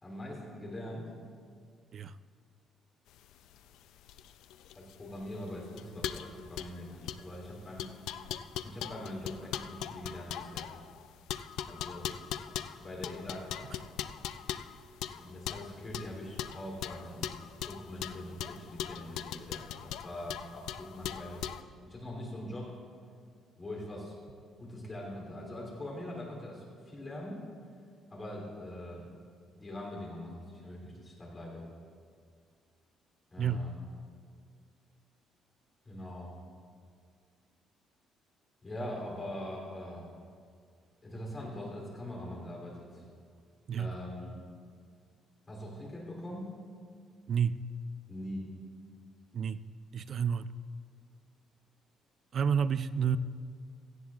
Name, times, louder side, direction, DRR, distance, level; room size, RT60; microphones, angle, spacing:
voice 1, 0.0-1.1 4.7-7.9 8.6-10.7 11.6-12.1 12.8-13.6 15.1-17.3 17.6-21.5 21.8-22.8 23.6-24.1 24.6-27.4 28.1-29.1 29.5-31.6 33.3-33.8 35.8-36.3 38.6-40.1 41.0-43.0 43.7-44.4 45.5-46.6 48.1-48.5, left 1 dB, 20° left, 3.1 m, -42 dB
sound 1, 3.2-21.6, left 10 dB, 85° left, 0.4 m, -40 dB
voice 2, 49.9-50.5 52.3-53.2, right 7 dB, 40° right, 0.3 m, -29 dB
17.5 x 14.0 x 2.4 m
cardioid pair, 160°, 0 cm